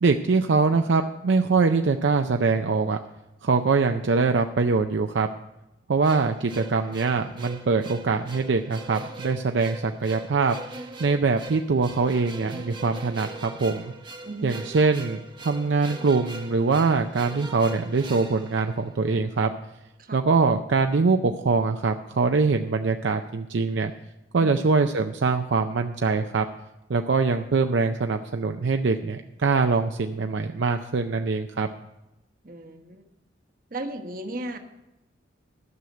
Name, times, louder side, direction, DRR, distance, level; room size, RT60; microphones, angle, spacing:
voice 1, 0.0-3.0 3.4-5.3 5.9-10.6 11.0-13.9 14.4-19.5 20.1-23.9 24.3-26.4 26.9-31.7, right 4 dB, 65° right, 6 dB, 0.5 m, -23 dB
sound 1, 6.0-19.3, right 2 dB, 25° right, 0.9 m, -41 dB
voice 2, 14.2-14.6 20.0-20.2 24.4-24.7 32.4-33.0 33.7-34.6, right 1 dB, 45° right, 6 dB, 1.1 m, -35 dB
12.5 x 6.4 x 7.7 m, 0.95 s
head